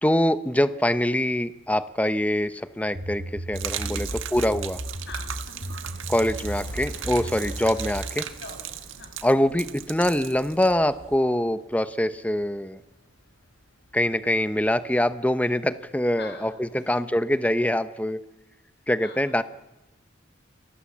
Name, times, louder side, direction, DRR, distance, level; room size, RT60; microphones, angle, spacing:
voice 1, 0.0-4.8 6.1-8.3 9.2-12.8 13.9-18.2 18.9-19.4, left 1 dB, 5° left, 13 dB, 0.8 m, -24 dB
Fixed-wing aircraft airplane, 1.3-17.4, left 1 dB, 75° left, 4.9 m, -52 dB
sound 1, 3.0-8.2, equal, 55° right, 2.1 m, -35 dB
Gurgling / Liquid, 3.5-11.2, right 10 dB, 75° right, 1.5 m, -37 dB
voice 2, 3.8-4.3 5.1-5.8 8.4-8.6 8.9-9.1 16.2-17.0 19.0-19.4, left 3 dB, 55° left, 5 dB, 6.1 m, -44 dB
28.5 x 23.0 x 7.4 m, 0.99 s
head